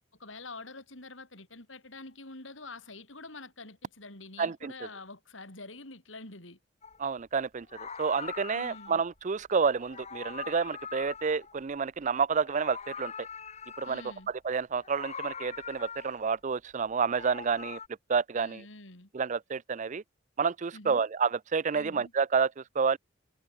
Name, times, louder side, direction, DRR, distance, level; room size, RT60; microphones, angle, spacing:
voice 1, 0.2-6.6 8.5-9.0 13.8-14.3 18.3-19.1 20.7-21.0 21.7-22.1, left 3 dB, 80° left, 6.7 m, -46 dB
voice 2, 4.4-4.7 7.0-7.7 8.0-13.1 13.8-14.0 14.4-17.8 18.1-18.6 19.1-20.0 20.4-23.0, right 5 dB, 40° right, 0.5 m, -29 dB
Meow, 6.8-7.0 7.6-9.1 9.8-12.1 12.3-14.2 14.8-16.4 16.9-17.9, left 6 dB, 35° left, 2.0 m, -43 dB
head